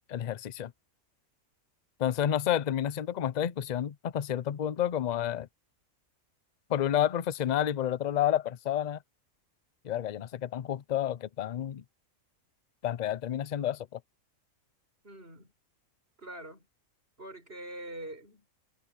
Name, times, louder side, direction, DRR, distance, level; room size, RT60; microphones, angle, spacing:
voice 1, 0.1-0.7 2.0-5.5 6.7-9.0 9.8-11.8 12.8-14.0, left 10 dB, 50° left, 0.5 m, -30 dB
voice 2, 15.0-15.5 16.2-16.7 17.2-18.5, right 1 dB, 45° right, 7.3 m, -44 dB
omnidirectional pair, 1.4 m